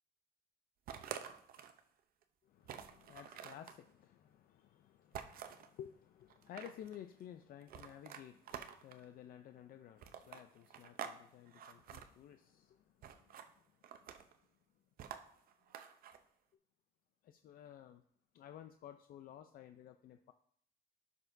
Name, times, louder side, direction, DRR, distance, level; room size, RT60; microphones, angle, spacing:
sound 1, 0.9-1.8 2.2-2.3 2.6-3.8 5.1-5.7 6.3-7.0 7.7-9.0 10.0-11.2 11.5-12.1 13.0-13.5 13.8-14.4 15.0-16.2, right 8 dB, 60° right, 0.7 m, -48 dB
voice 1, 2.4-13.4 17.2-18.0 18.3-20.3, left 10 dB, 60° left, 8 dB, 0.5 m, -54 dB
11.5 x 6.0 x 2.6 m, 0.66 s
cardioid pair, 110°, 17 cm